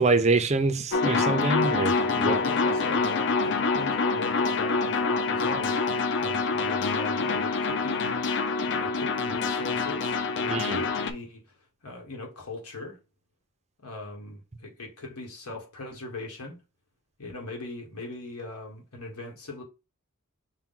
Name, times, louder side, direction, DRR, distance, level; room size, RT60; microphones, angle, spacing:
voice 1, 0.0-2.3 10.5-10.8, right 3 dB, 30° right, 0.5 m, -25 dB
Acid modulation, 0.9-11.1, left 4 dB, 55° left, 0.5 m, -26 dB
voice 2, 2.2-8.1 8.6-11.4 11.8-13.0 13.8-16.6 17.2-19.6, left 2 dB, 80° left, 1.4 m, -39 dB
5.7 x 2.2 x 3.8 m
head